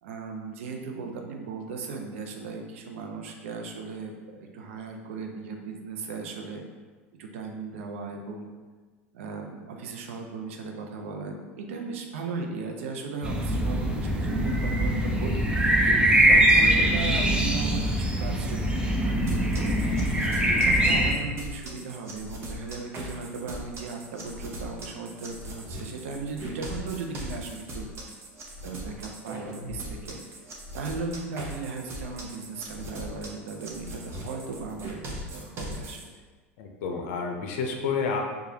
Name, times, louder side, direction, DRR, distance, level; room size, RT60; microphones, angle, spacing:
voice 1, 0.0-6.6 7.2-8.5 9.1-15.5 16.3-20.1 20.7-27.9 28.6-30.2 30.7-36.1, right 4 dB, 75° right, 2 dB, 0.5 m, -37 dB
sound 1, 13.2-21.1, right 1 dB, 15° right, 0.5 m, -22 dB
sound 2, 19.3-36.0, equal, 35° right, 0.8 m, -39 dB
voice 2, 36.6-38.2, left 5 dB, 65° left, 2 dB, 0.6 m, -30 dB
4.8 x 2.3 x 2.7 m, 1.4 s
hypercardioid pair, 85°, 7 cm